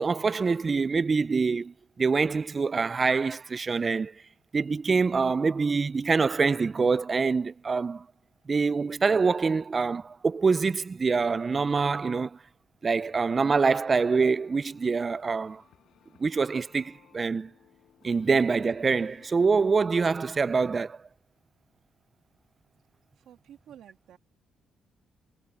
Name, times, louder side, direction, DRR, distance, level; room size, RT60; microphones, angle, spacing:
voice 1, 0.0-4.1 4.5-8.1 8.5-12.4 12.8-15.6 16.2-17.5 18.0-21.0, right 4 dB, 35° right, 0.4 m, -25 dB
sound 1, 12.9-19.7, left 10 dB, 70° left, 4.7 m, -60 dB
voice 2, 23.2-24.2, right 10 dB, 75° right, 2.4 m, -51 dB
cardioid pair, 90°, 0 cm